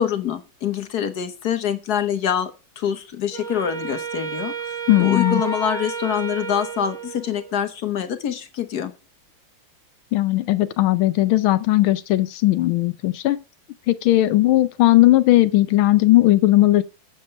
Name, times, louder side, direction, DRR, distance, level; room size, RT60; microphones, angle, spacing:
voice 1, 0.0-4.7 5.0-8.9, left 9 dB, 60° left, 1.3 m, -25 dB
Wind instrument woodwind instrument, 3.3-7.7, right 4 dB, 5° left, 0.7 m, -31 dB
voice 2, 4.9-5.4 10.1-13.4 13.9-16.8, left 16 dB, 85° left, 1.5 m, -17 dB
7.7 x 7.4 x 5.2 m
omnidirectional pair, 2.2 m